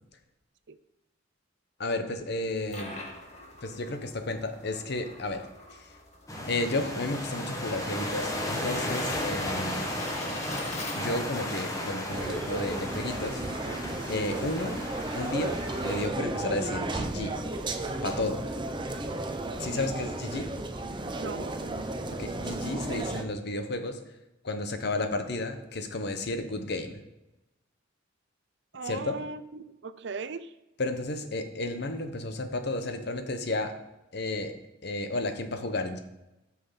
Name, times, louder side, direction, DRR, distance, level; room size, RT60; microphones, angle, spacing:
voice 1, 1.8-2.9 3.6-5.5 5.7-5.9 6.5-9.9 10.9-13.4 14.1-14.8 15.1-17.3 18.0-18.4 19.6-20.5 22.1-24.0 24.4-27.0 28.8-29.2 30.8-33.7 34.1-34.5 34.8-36.0, left 2 dB, 55° left, 7 dB, 1.0 m, -32 dB
sound 1, 2.4-11.4, left 2 dB, 35° left, 1.7 m, -44 dB
sound 2, 6.3-16.1, left 1 dB, 15° left, 1.2 m, -34 dB
sound 3, 12.1-23.2, right 2 dB, 25° right, 0.7 m, -34 dB
voice 2, 19.4-19.9 21.2-21.5 28.7-30.5, right 4 dB, 65° right, 13 dB, 0.5 m, -39 dB
8.9 x 6.2 x 5.6 m, 0.96 s
head